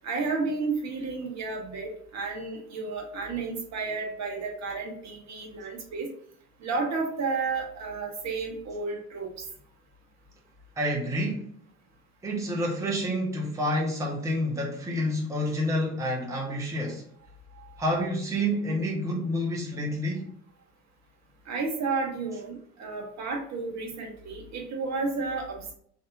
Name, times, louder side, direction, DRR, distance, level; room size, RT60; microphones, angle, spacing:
voice 1, 0.0-6.1 6.6-9.4 17.6-17.8 21.5-25.7, right 4 dB, 40° right, 1 dB, 0.9 m, -32 dB
voice 2, 10.8-11.5 12.2-17.0 17.8-20.3, equal, 5° right, -2 dB, 0.8 m, -28 dB
3.4 x 2.6 x 2.4 m, 0.62 s
figure-of-eight pair, 55°, 44 cm